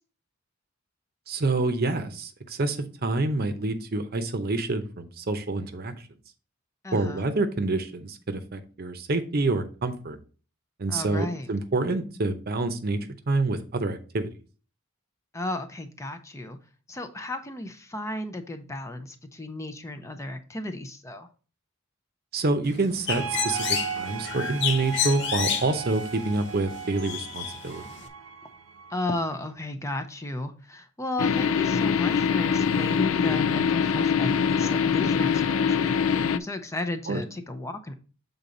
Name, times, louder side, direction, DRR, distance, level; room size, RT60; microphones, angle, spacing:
voice 1, 1.3-5.9 6.9-10.2 10.8-14.3 22.3-27.8 37.1-37.2, right 2 dB, 50° right, 0.7 m, -27 dB
voice 2, 6.8-7.3 10.9-11.5 15.3-16.6 16.9-21.3 28.9-35.9 36.3-37.9, left 2 dB, 15° left, 0.5 m, -34 dB
Bird, 22.6-28.1, left 8 dB, 60° left, 0.8 m, -31 dB
sound 1, 23.1-29.5, right 6 dB, 80° right, 0.7 m, -36 dB
sound 2, 31.2-36.4, left 6 dB, 80° left, 0.4 m, -23 dB
7.0 x 4.0 x 3.8 m
head